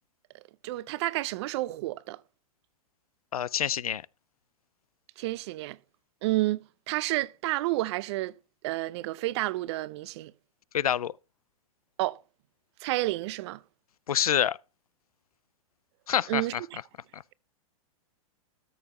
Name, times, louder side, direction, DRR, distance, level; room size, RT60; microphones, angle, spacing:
voice 1, 0.6-2.2 5.2-5.8 6.2-8.4 8.6-10.3 12.0-12.2 12.8-13.6 16.3-16.8, right 18 dB, 50° right, 0.5 m, -30 dB
voice 2, 3.3-4.0 10.7-11.1 14.1-14.6 16.1-16.4 17.1-17.2, left 9 dB, 85° left, 0.4 m, -26 dB
13.0 x 5.2 x 4.0 m
hypercardioid pair, 110°, 18 cm